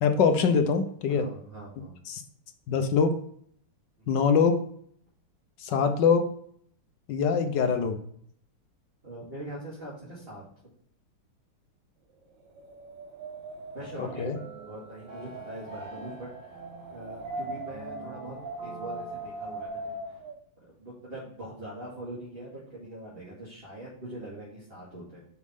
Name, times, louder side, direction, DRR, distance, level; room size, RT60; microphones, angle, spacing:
voice 1, 0.0-1.3 2.1-2.2 2.7-3.1 4.1-4.6 5.6-6.3 7.1-8.0 14.0-14.4, left 5 dB, 65° left, 7 dB, 1.3 m, -23 dB
voice 2, 1.1-2.0 4.0-4.1 9.0-10.4 13.7-16.3 16.9-18.4 18.6-20.0 20.6-25.3, right 1 dB, 25° right, -7 dB, 2.3 m, -42 dB
Wind, 12.4-20.4, right 2 dB, 60° right, 1.6 m, -40 dB
sound 1, 14.0-19.7, right 2 dB, 85° right, 3.5 m, -47 dB
6.4 x 6.0 x 3.6 m, 0.63 s
omnidirectional pair, 2.3 m